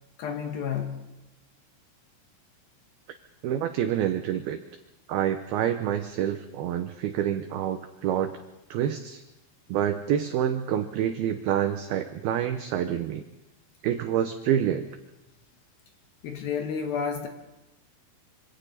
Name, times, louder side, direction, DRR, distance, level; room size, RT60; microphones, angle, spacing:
voice 1, 0.2-1.0 16.2-17.3, left 7 dB, 65° left, 5 dB, 2.5 m, -30 dB
voice 2, 3.4-4.6 5.1-8.3 8.7-9.2 9.7-13.2 13.8-14.9, right 10 dB, 85° right, 8 dB, 2.1 m, -27 dB
26.0 x 25.5 x 4.2 m, 0.96 s
omnidirectional pair, 5.4 m